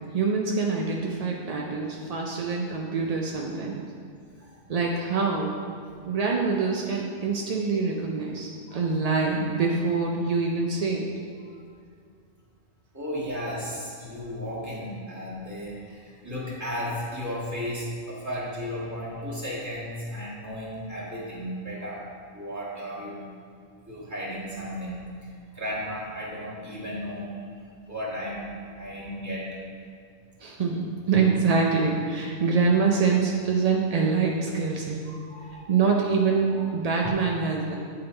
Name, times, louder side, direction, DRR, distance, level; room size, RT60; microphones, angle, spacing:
voice 1, 0.1-3.8 4.7-5.5 6.0-11.1 30.4-35.0 35.7-37.8, right 4 dB, 60° right, -1 dB, 0.4 m, -25 dB
voice 2, 12.9-22.0 22.3-23.2 23.9-25.0 25.5-27.3 27.9-28.5 28.8-29.6 35.1-35.7 36.6-36.7, equal, 15° right, -8 dB, 1.6 m, -34 dB
sound 1, 25.7-28.3 31.1-34.5 35.2-35.3 37.0-37.1, left 1 dB, 30° left, 0.4 m, -45 dB
8.6 x 3.8 x 4.3 m, 2.3 s
omnidirectional pair, 1.3 m